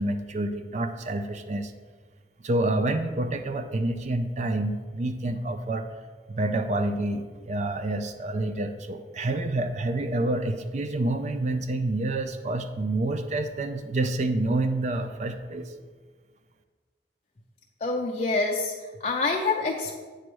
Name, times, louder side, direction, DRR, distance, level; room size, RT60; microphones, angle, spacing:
voice 1, 0.0-1.7 2.4-5.9 6.3-15.7, right 2 dB, 40° right, 8 dB, 0.4 m, -28 dB
voice 2, 17.8-20.0, left 3 dB, 35° left, -1 dB, 0.5 m, -27 dB
8.2 x 3.3 x 6.1 m, 1.5 s
head